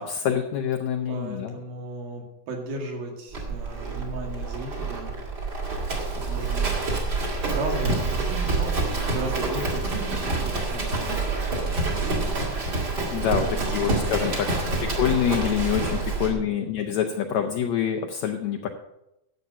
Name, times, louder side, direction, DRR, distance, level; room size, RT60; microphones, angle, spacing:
voice 1, 0.0-1.5 13.1-18.7, left 9 dB, 75° left, 4 dB, 1.7 m, -26 dB
voice 2, 1.1-5.1 6.2-6.8 7.5-11.2 13.1-13.7 14.4-14.9 16.3-16.7, right 2 dB, 85° right, 1 dB, 3.9 m, -36 dB
Livestock farm animals working animals, 3.3-16.3, right 3 dB, 35° right, 2.2 m, -27 dB
12.0 x 8.2 x 5.7 m, 0.88 s
omnidirectional pair, 4.1 m